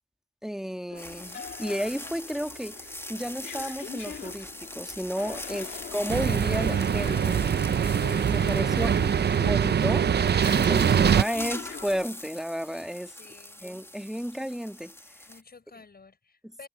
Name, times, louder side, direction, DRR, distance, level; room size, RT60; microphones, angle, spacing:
voice 1, 0.4-7.4 8.3-9.0 9.3-13.1 13.6-14.9, equal, 5° right, 1.7 m, -33 dB
sound 1, 0.9-12.1, left 7 dB, 90° left, 2.8 m, -42 dB
sound 2, 1.0-15.4, left 1 dB, 15° left, 2.2 m, -42 dB
voice 2, 5.4-5.9 13.0-13.6 15.2-16.7, left 4 dB, 60° left, 6.6 m, -52 dB
sound 3, 6.1-11.2, right 8 dB, 65° right, 0.6 m, -23 dB
cardioid pair, 45°, 18 cm